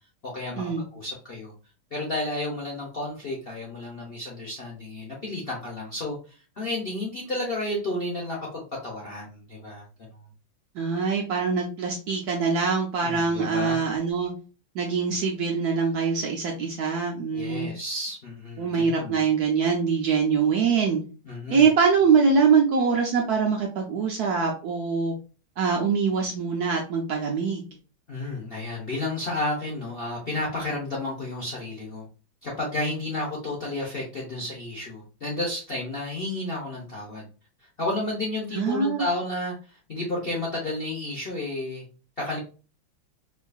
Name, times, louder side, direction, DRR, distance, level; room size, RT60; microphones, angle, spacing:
voice 1, 0.2-1.5 1.9-9.9 13.0-13.8 17.3-19.2 21.2-21.7 28.1-32.0 32.4-37.2 37.8-41.8 42.2-42.4, left 2 dB, 55° left, -3 dB, 0.6 m, -32 dB
voice 2, 10.7-14.3 14.7-17.7 18.6-21.0 21.5-25.1 25.6-27.6 38.5-39.0, right 5 dB, 70° right, 1 dB, 0.9 m, -23 dB
4.5 x 2.5 x 2.3 m, 0.35 s
omnidirectional pair, 2.2 m